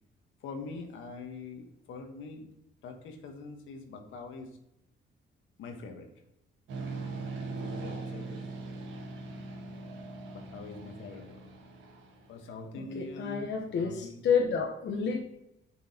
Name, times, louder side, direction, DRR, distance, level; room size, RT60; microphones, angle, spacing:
voice 1, 0.4-2.5 2.8-4.6 5.6-6.1 7.5-8.5 10.3-11.4 12.3-14.2, left 3 dB, 80° left, 4 dB, 1.4 m, -44 dB
sound 1, 6.7-12.5, right 3 dB, 75° right, 1.5 m, -40 dB
voice 2, 12.8-15.2, left 6 dB, 65° left, 1 dB, 1.1 m, -30 dB
6.8 x 6.3 x 2.9 m, 0.80 s
cardioid pair, 90°, 20 cm